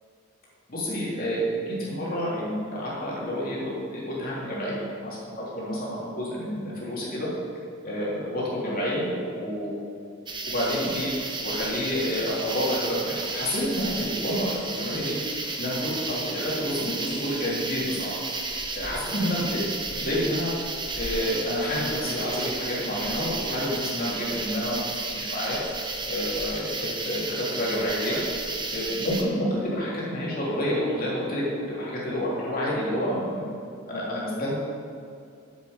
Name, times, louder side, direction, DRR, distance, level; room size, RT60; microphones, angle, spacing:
voice 1, 0.7-7.3 7.8-9.7 10.5-11.1 11.4-15.2 15.6-18.2 18.8-19.7 19.9-20.5 21.0-25.6 26.1-28.2 28.7-31.4 31.7-33.5 33.9-34.5, equal, 45° left, -6 dB, 3.4 m, -29 dB
sound 1, 10.3-29.2, right 3 dB, 25° right, 1.0 m, -33 dB
7.8 x 7.8 x 8.7 m, 2.4 s
head